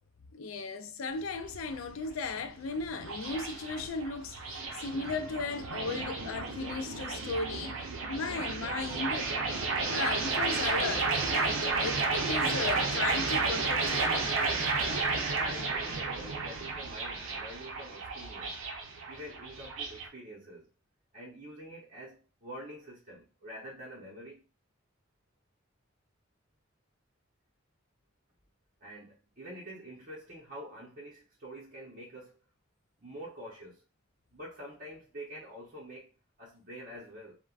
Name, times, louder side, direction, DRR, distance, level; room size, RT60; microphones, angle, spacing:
voice 1, 0.3-9.3 9.9-14.2 14.9-15.2, left 4 dB, 75° left, 0.4 m, -36 dB
sound 1, 1.1-20.1, right 3 dB, 70° right, 0.6 m, -32 dB
voice 2, 15.3-18.6 19.1-20.7 21.1-24.4 28.8-32.4 33.0-33.8 34.3-36.1 36.4-37.4, equal, 45° right, 0.8 m, -46 dB
3.3 x 2.1 x 2.4 m
head